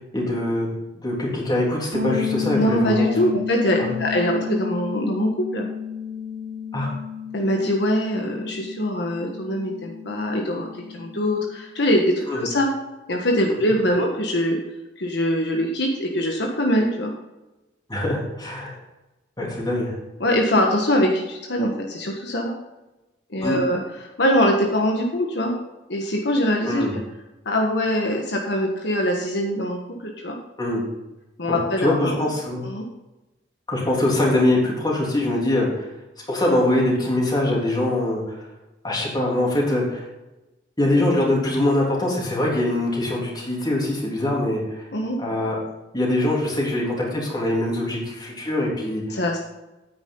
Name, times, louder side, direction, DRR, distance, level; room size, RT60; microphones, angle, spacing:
voice 1, 0.1-0.7 1.0-3.1 3.8-3.9 6.7-6.9 12.3-12.4 13.9-14.0 17.9-18.8 19.4-20.0 23.4-23.6 26.7-26.9 30.6-30.8 31.5-32.6 33.7-35.9 36.3-38.4 38.8-40.1 40.8-44.9 45.2-45.6 45.9-49.2, left 1 dB, 25° left, -3 dB, 3.4 m, -23 dB
sound 1, 1.9-11.6, left 7 dB, 85° right, 2.7 m, -31 dB
voice 2, 2.5-5.7 7.3-10.7 10.9-12.7 13.1-14.6 15.0-17.1 20.2-22.5 23.3-23.8 24.2-25.5 25.9-27.0 27.4-30.4 31.4-32.2 32.6-32.8 44.9-45.2 49.1-49.4, equal, 65° left, 1 dB, 1.4 m, -23 dB
9.7 x 9.1 x 3.9 m, 1.0 s
head